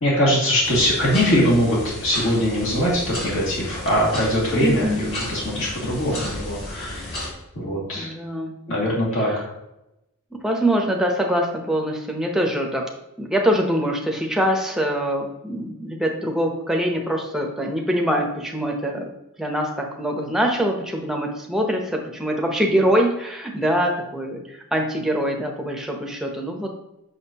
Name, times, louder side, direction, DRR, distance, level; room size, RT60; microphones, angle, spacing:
voice 1, 0.0-7.1 7.5-8.1 8.7-9.5, equal, 60° left, -5 dB, 2.3 m, -22 dB
sound 1, 0.6-7.3, left 1 dB, 45° left, 2.0 m, -33 dB
voice 2, 4.6-5.0 7.9-8.6 9.2-9.4 10.4-12.9 13.2-19.1 19.4-26.8, equal, ahead, 1 dB, 0.8 m, -24 dB
6.5 x 6.0 x 2.9 m, 0.90 s
head